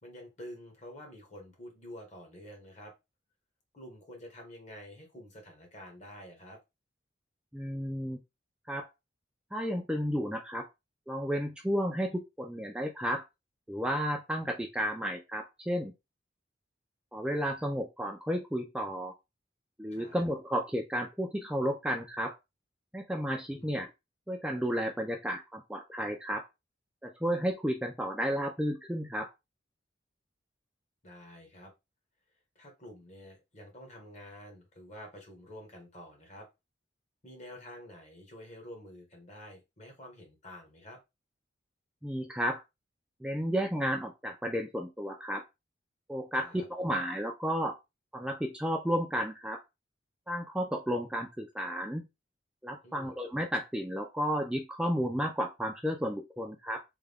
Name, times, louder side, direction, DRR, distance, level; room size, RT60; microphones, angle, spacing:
voice 1, 0.0-2.9 3.7-6.6 19.9-20.2 23.5-23.8 31.0-31.7 32.5-36.5 37.2-41.0 46.3-46.7 52.8-53.1, equal, 40° left, 1 dB, 1.3 m, -49 dB
voice 2, 7.5-8.2 8.7-8.9 9.5-10.7 11.1-13.2 13.7-15.9 17.1-19.1 19.8-22.4 22.9-23.9 24.3-26.5 27.0-29.3 42.0-42.6 43.2-45.4 46.1-47.8 48.1-49.6 50.3-52.1 52.6-56.8, equal, 5° right, 2 dB, 0.3 m, -32 dB
3.5 x 2.2 x 3.4 m, 0.23 s
head